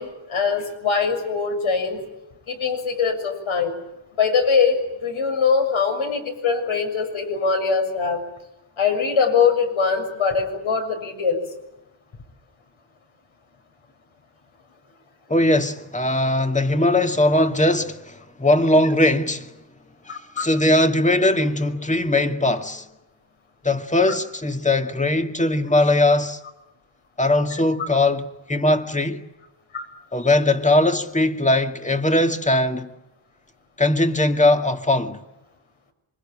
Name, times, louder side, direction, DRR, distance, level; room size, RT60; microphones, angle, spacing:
voice 1, 0.0-2.0 2.5-3.7 4.2-8.2 8.8-11.4 20.1-20.4 29.7-29.8, left 5 dB, 70° left, 7.0 m, -22 dB
voice 2, 15.3-19.5 20.1-22.9 23.6-26.4 27.2-29.2 30.1-32.9 33.8-35.2, left 1 dB, 15° left, 2.2 m, -20 dB
27.5 x 25.0 x 8.7 m
cardioid pair, 100°, 49 cm